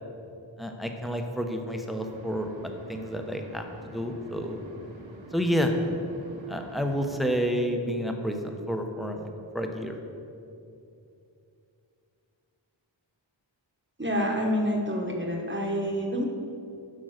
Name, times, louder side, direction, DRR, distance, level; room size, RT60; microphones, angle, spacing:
voice 1, 0.6-3.6 3.9-4.6 5.3-5.7 6.5-9.2 9.5-9.9, equal, ahead, 4 dB, 0.9 m, -29 dB
sound 1, 2.0-7.3, right 2 dB, 80° right, 1.1 m, -47 dB
voice 2, 14.0-16.2, equal, 25° right, -1 dB, 1.2 m, -27 dB
7.8 x 5.3 x 6.5 m, 2.7 s
wide cardioid pair, 45°, 46 cm